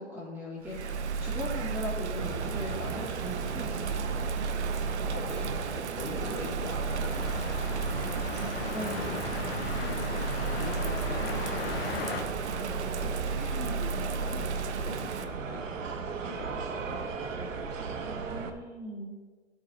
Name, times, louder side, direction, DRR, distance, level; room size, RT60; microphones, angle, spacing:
voice 1, 0.0-4.3 8.7-9.1 18.3-19.2, equal, 5° right, -8 dB, 2.2 m, -39 dB
Bird vocalization bird call bird song / Rain, 0.6-15.2, right 5 dB, 60° right, 0.8 m, -34 dB
sound 1, 2.2-18.5, right 5 dB, 85° right, 1.3 m, -37 dB
voice 2, 5.0-7.6 9.7-15.6 15.9-17.5, left 4 dB, 65° left, 0 dB, 2.1 m, -43 dB
sound 2, 7.1-12.2, left 6 dB, 50° left, 1.0 m, -37 dB
14.5 x 8.7 x 2.9 m, 1.4 s
hypercardioid pair, 165°, 38 cm